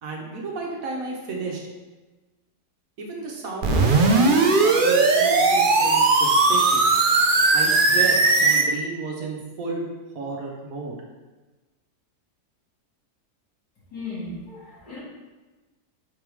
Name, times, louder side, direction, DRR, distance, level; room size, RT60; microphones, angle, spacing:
voice 1, 0.0-1.6 3.0-6.9 7.5-9.9 10.1-11.0, right 3 dB, 60° right, -1 dB, 1.3 m, -32 dB
sound 1, 3.6-8.6, right 3 dB, 80° right, 0.4 m, -18 dB
voice 2, 13.9-15.0, left 3 dB, 75° left, -7 dB, 2.5 m, -36 dB
5.9 x 3.6 x 4.7 m, 1.2 s
omnidirectional pair, 1.7 m